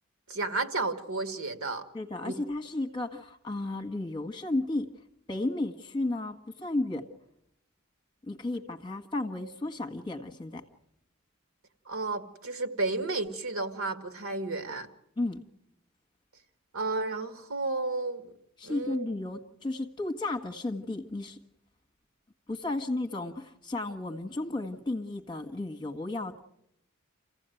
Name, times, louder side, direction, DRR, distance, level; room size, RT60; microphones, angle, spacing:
voice 1, 0.3-1.9 2.2-2.3 11.9-14.9 16.7-18.3 18.6-19.1, right 3 dB, 75° right, 8 dB, 1.9 m, -32 dB
voice 2, 1.9-4.9 5.3-7.1 8.3-10.6 15.2-15.4 18.6-21.4 22.5-26.5, left 2 dB, 20° left, 6 dB, 1.7 m, -33 dB
28.0 x 16.0 x 9.2 m, 0.81 s
head